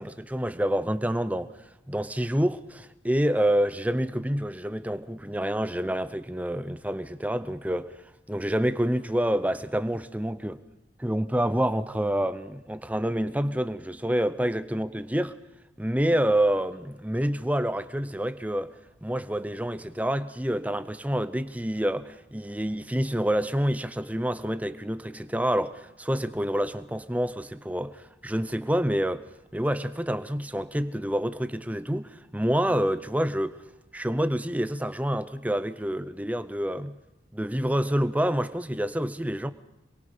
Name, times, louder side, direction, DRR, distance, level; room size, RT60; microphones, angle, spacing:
voice 1, 0.0-1.5 1.9-8.0 8.3-10.6 11.0-15.4 15.8-18.7 19.0-29.2 29.5-33.6 33.9-37.0 37.3-39.5, equal, 10° right, 0.6 m, -27 dB
27.0 x 22.5 x 5.1 m
head